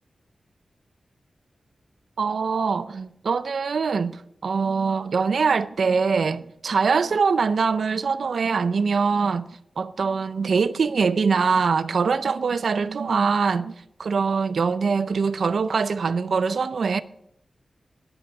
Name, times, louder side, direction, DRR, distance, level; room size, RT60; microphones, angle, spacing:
voice 1, 2.2-9.5 9.8-13.7 14.0-17.0, right 5 dB, 75° right, 0.5 m, -23 dB
11.0 x 8.9 x 8.2 m
wide cardioid pair, 120°, 0 cm